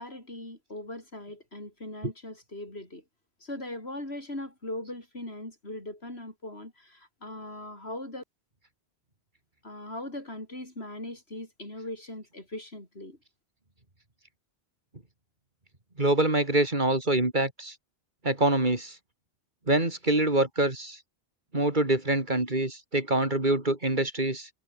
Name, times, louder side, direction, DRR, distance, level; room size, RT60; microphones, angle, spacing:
voice 1, 0.0-3.0 3.4-8.2 9.6-13.2, left 1 dB, 80° left, 6.9 m, -40 dB
voice 2, 16.0-17.8 18.2-19.0 19.7-21.0 21.5-24.5, right 2 dB, 50° right, 3.7 m, -25 dB
omnidirectional pair, 1.0 m